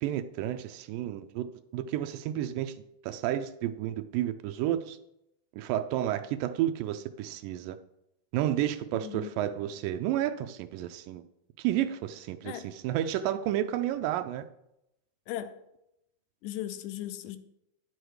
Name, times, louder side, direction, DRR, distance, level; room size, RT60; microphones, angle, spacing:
voice 1, 0.0-1.5 1.7-2.8 3.0-5.0 5.6-7.8 8.3-11.2 11.6-14.5, right 12 dB, 85° right, 2.2 m, -31 dB
voice 2, 8.9-9.3 12.4-12.7 15.3-15.6 16.4-17.4, left 12 dB, 80° left, 2.1 m, -37 dB
11.0 x 6.4 x 4.7 m
omnidirectional pair, 3.9 m